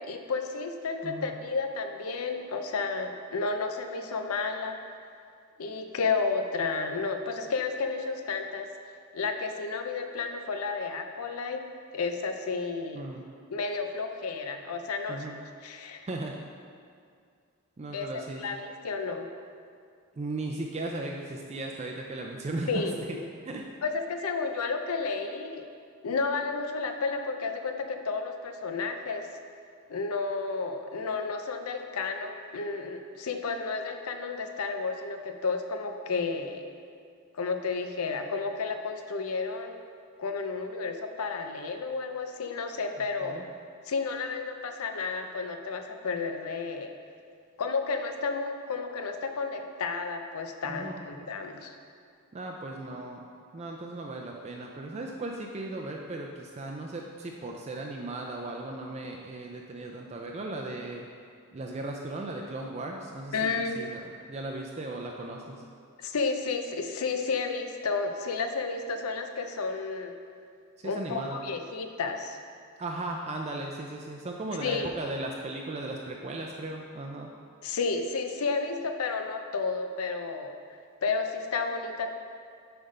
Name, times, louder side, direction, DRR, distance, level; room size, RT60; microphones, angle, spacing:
voice 1, 0.0-4.8 5.6-13.1 13.5-16.1 17.9-19.3 22.7-23.0 23.8-25.7 26.0-29.3 29.9-36.7 37.3-39.8 40.2-43.5 43.9-46.9 47.6-51.7 63.3-63.8 66.0-70.1 70.8-72.4 74.6-74.9 77.6-80.6 81.0-82.1, left 4 dB, 90° left, 6 dB, 0.5 m, -32 dB
voice 2, 17.8-18.6 20.2-22.8 23.4-23.7 43.2-43.5 50.6-51.0 52.3-53.3 53.5-61.1 61.5-64.0 64.3-65.6 70.8-71.4 72.8-77.3, right 2 dB, 30° right, 0 dB, 0.4 m, -37 dB
7.4 x 3.4 x 5.3 m, 2.3 s
head